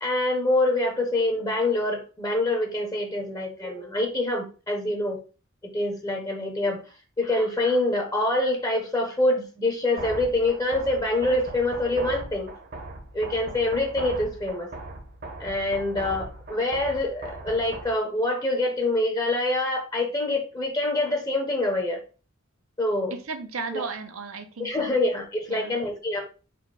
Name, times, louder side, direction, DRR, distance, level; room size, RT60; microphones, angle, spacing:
voice 1, 0.0-5.2 5.6-6.8 7.2-12.5 13.1-14.7 15.4-22.0 22.8-23.1 23.7-23.8 24.6-26.2, left 1 dB, 20° left, 0.8 m, -25 dB
sound 1, 10.0-18.0, right 2 dB, 50° right, 0.9 m, -39 dB
voice 2, 23.1-24.9 25.5-25.8, right 4 dB, 80° right, 0.7 m, -35 dB
4.2 x 2.3 x 4.7 m
head